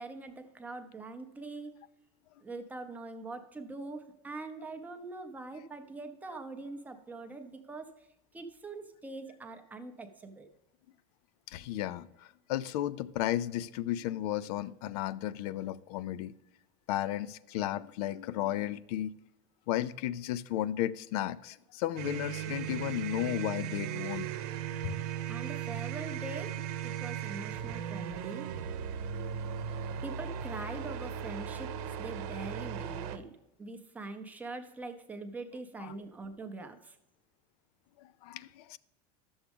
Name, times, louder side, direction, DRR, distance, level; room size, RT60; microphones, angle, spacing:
voice 1, 0.0-1.8 2.4-8.1 8.3-10.5 24.8-25.0 25.3-28.5 30.0-31.7 32.0-37.0, right 3 dB, 10° right, 0.5 m, -43 dB
voice 2, 11.5-16.3 16.9-19.1 19.7-24.3 24.8-24.9 35.8-35.9 38.0-38.8, left 13 dB, 85° left, 0.4 m, -34 dB
sound 1, 22.0-33.2, right 9 dB, 85° right, 0.8 m, -37 dB
11.5 x 7.1 x 3.5 m
cardioid pair, 180°, 19 cm